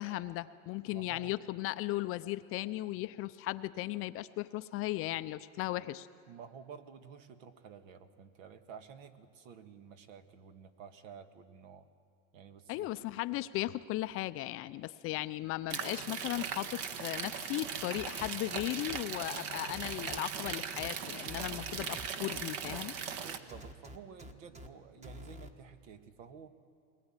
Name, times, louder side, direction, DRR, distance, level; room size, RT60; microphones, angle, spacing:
voice 1, 0.0-6.1 12.7-22.9, left 16 dB, 35° left, 12 dB, 0.5 m, -37 dB
voice 2, 0.9-1.3 6.3-11.9 12.3-12.9 23.1-26.5, right 7 dB, 70° right, 9 dB, 1.8 m, -51 dB
sound 1, 15.7-23.4, right 7 dB, 50° right, 1.4 m, -39 dB
sound 2, 17.9-19.0 19.7-20.9 21.2-22.8 23.5-24.7 25.0-25.5, equal, 15° right, 1.4 m, -48 dB
22.0 x 19.5 x 9.0 m, 2.4 s
supercardioid pair, 135°, 40 cm